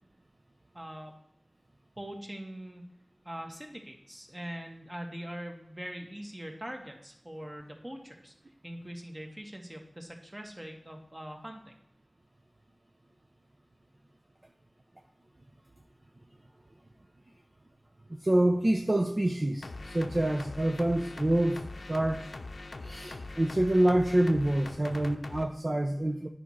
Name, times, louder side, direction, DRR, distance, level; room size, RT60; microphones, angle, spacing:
voice 1, 0.7-1.1 2.0-2.8 3.3-8.3 8.6-11.7, equal, 25° right, 2 dB, 1.7 m, -42 dB
voice 2, 18.2-22.3 22.8-26.3, right 1 dB, 45° right, 3 dB, 0.7 m, -27 dB
sound 1, 19.6-25.4, left 2 dB, 85° left, 0.6 m, -42 dB
9.9 x 4.3 x 6.4 m, 0.78 s
wide cardioid pair, 45°, 0 cm